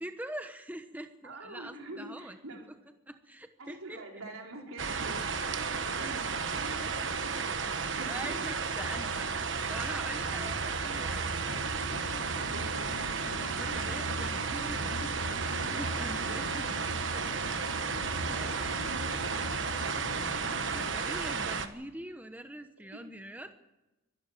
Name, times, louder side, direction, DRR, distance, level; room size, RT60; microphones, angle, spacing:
voice 1, 0.0-2.7 3.1-4.0 8.0-11.6 13.4-16.6 17.1-17.3 18.3-18.6 20.5-23.5, right 1 dB, 10° right, 7 dB, 1.0 m, -43 dB
voice 2, 1.2-2.7 3.6-8.3 12.5-12.9 16.3-16.6 18.3-19.4 22.9-23.1, right 2 dB, 90° right, 1 dB, 4.6 m, -45 dB
sound 1, 4.8-21.7, right 5 dB, 60° right, 1.3 m, -33 dB
sound 2, 11.5-20.9, left 3 dB, 80° left, 0.8 m, -45 dB
23.5 x 12.0 x 9.1 m, 1.0 s
head